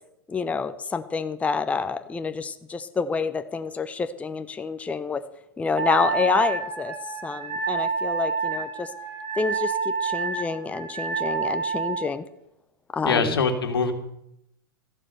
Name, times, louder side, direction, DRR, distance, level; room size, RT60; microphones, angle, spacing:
voice 1, 0.3-5.2 5.6-6.9 7.2-8.9 9.4-12.2 12.9-13.4, left 5 dB, 10° left, 11 dB, 0.6 m, -28 dB
Wind instrument woodwind instrument, 5.8-12.1, right 5 dB, 50° right, 4.0 m, -28 dB
voice 2, 13.0-13.9, left 4 dB, 80° left, 6 dB, 1.8 m, -23 dB
14.0 x 7.2 x 6.7 m, 0.81 s
hypercardioid pair, 105°, 12 cm